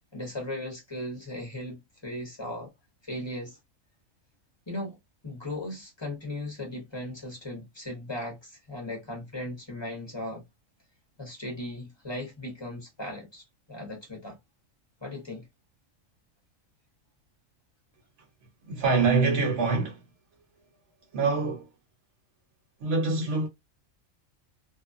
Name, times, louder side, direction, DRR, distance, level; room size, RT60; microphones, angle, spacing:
voice 1, 0.1-2.7 3.0-3.6 4.7-5.0 5.2-10.4 11.2-14.4 15.0-15.4, left 1 dB, 25° left, 0.8 m, -37 dB
voice 2, 18.7-20.0 21.1-21.7 22.8-23.5, right 4 dB, 60° right, 1.2 m, -25 dB
2.6 x 2.2 x 2.5 m
omnidirectional pair, 1.4 m